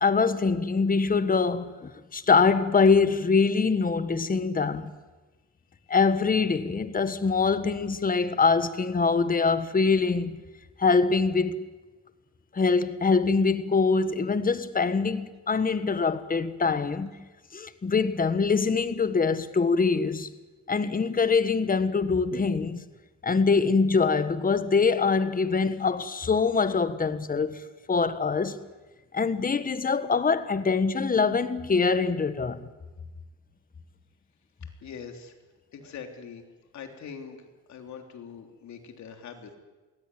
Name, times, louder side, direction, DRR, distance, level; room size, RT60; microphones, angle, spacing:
voice 1, 0.0-4.9 5.9-10.4 10.8-11.6 12.5-17.1 17.5-20.3 20.7-22.9 23.2-27.6 27.9-28.6 29.1-32.7, left 4 dB, 30° left, 1.4 m, -24 dB
voice 2, 34.8-35.3 35.7-36.4 36.7-37.4 37.7-39.6, left 6 dB, 65° left, 3.4 m, -42 dB
22.5 x 17.0 x 9.3 m
cardioid pair, 90°, 30 cm